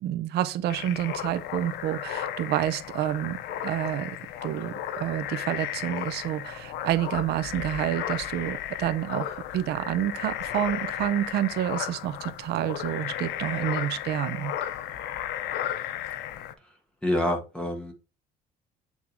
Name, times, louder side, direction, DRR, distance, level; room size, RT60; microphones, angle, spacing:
voice 1, 0.0-4.2 4.4-9.3 9.5-14.5, right 12 dB, 75° right, 0.8 m, -29 dB
sound 1, 0.7-16.5, left 11 dB, 80° left, 0.8 m, -34 dB
voice 2, 17.0-17.9, left 1 dB, 5° left, 1.8 m, -27 dB
8.4 x 3.6 x 4.5 m
cardioid pair, 110°, 17 cm